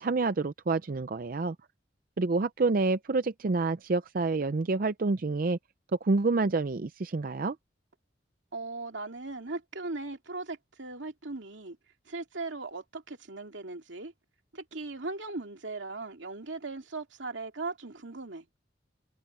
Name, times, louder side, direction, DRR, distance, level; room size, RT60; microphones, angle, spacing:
voice 1, 0.0-1.6 2.2-5.6 5.9-7.6, right 3 dB, 50° right, 0.5 m, -28 dB
voice 2, 8.5-11.8 12.1-14.1 14.5-18.5, right 3 dB, 80° right, 2.4 m, -38 dB
head